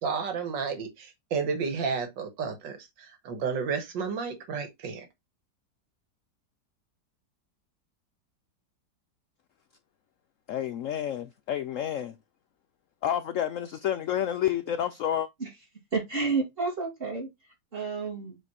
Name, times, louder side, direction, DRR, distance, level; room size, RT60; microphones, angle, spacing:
voice 1, 0.0-5.1, right 5 dB, 90° right, 1.9 m, -32 dB
voice 2, 10.5-12.2 13.0-15.3, left 10 dB, 85° left, 0.7 m, -29 dB
voice 3, 15.9-18.4, right 4 dB, 30° right, 2.6 m, -31 dB
7.1 x 3.2 x 4.1 m
omnidirectional pair, 1.9 m